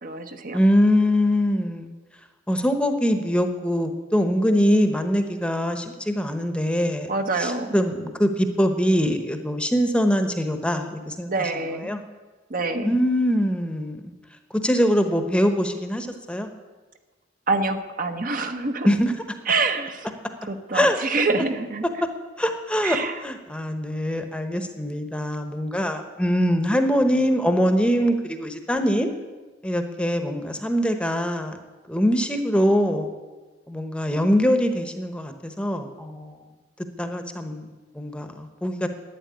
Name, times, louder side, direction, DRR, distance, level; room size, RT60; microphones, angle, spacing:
voice 1, 0.0-0.6 7.1-7.8 11.3-11.9 12.5-13.0 17.5-18.9 19.5-20.1 20.5-21.8 22.8-23.2, right 3 dB, 50° right, 6 dB, 1.0 m, -26 dB
voice 2, 0.5-1.9 2.5-7.1 7.4-11.5 11.8-12.0 12.8-14.0 14.5-16.5 18.8-19.1 20.7-21.0 22.4-29.1 29.6-31.6 31.9-33.1 33.7-36.4 37.0-37.7 37.9-38.9, equal, 5° left, 6 dB, 0.9 m, -23 dB
11.5 x 9.2 x 9.5 m, 1.3 s
head